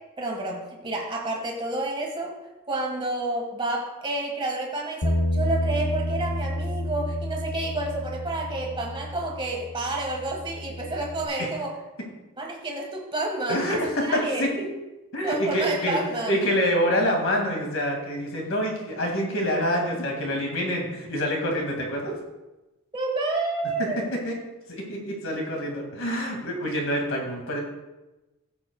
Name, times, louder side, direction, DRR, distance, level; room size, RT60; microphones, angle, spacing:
voice 1, 0.2-2.3 2.7-11.7 12.4-14.7 15.2-16.4 22.9-24.0, right 2 dB, 20° right, 0 dB, 1.6 m, -29 dB
Bass guitar, 5.0-11.3, left 1 dB, 85° left, 1.0 m, -30 dB
voice 2, 13.5-14.5 15.1-16.0 16.3-22.2 23.8-23.9 24.2-24.3 24.7-27.6, equal, 65° left, 1 dB, 2.1 m, -26 dB
14.5 x 7.5 x 2.3 m, 1.0 s
head